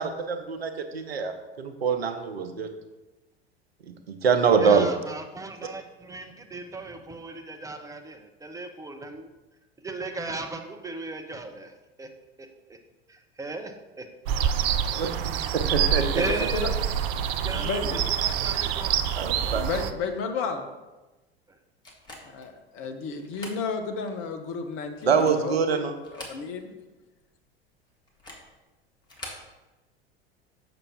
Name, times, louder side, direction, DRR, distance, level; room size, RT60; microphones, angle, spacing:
voice 1, 0.0-2.7 4.1-4.9 14.9-15.2 15.5-16.1 19.2-19.7 25.0-25.9, right 6 dB, 75° right, 7 dB, 0.8 m, -24 dB
voice 2, 4.6-9.3 9.8-12.1 12.4-12.8 13.1-14.1 14.3-14.5 14.9-15.1 16.1-16.8 17.4-19.0 19.4-19.7 21.5-21.6, right 2 dB, 10° right, 4 dB, 0.7 m, -36 dB
sound 1, 14.3-19.9, right 8 dB, 45° right, 0.5 m, -26 dB
voice 3, 15.8-16.6 17.5-18.1 19.5-20.6 22.3-26.7, left 5 dB, 40° left, 5 dB, 0.9 m, -33 dB
sound 2, 21.8-22.5 23.2-23.6 24.1-24.2 24.9-25.5 26.0-26.8 27.0-27.1 28.1-28.5 29.0-29.5, left 1 dB, 15° left, 1.4 m, -44 dB
6.8 x 5.9 x 3.6 m, 1.1 s
figure-of-eight pair, 80°, 31 cm